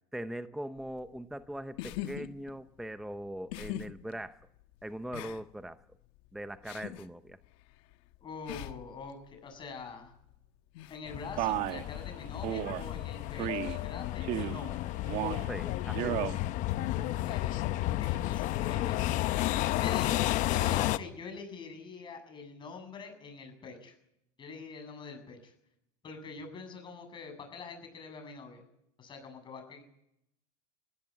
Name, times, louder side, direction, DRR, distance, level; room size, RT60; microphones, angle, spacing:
voice 1, 0.1-4.4 4.8-5.8 6.3-7.4 15.5-16.3, right 1 dB, ahead, 10 dB, 0.8 m, -41 dB
sound 1, 0.8-20.4, left 12 dB, 65° left, 1.5 m, -47 dB
voice 2, 8.2-10.1 10.9-14.9 16.9-19.2 19.8-24.0 24.4-25.5 26.0-28.6 29.0-29.8, left 4 dB, 30° left, 6 dB, 7.6 m, -45 dB
sound 2, 11.1-21.0, left 15 dB, 45° left, 0.8 m, -32 dB
Male speech man speaking, 11.4-11.8 12.4-12.8 13.4-13.8 14.2-14.6 15.0-15.5 15.9-16.4, right 13 dB, 50° right, 1.4 m, -33 dB
20.5 x 17.0 x 8.5 m, 0.77 s
supercardioid pair, 135°, 17 cm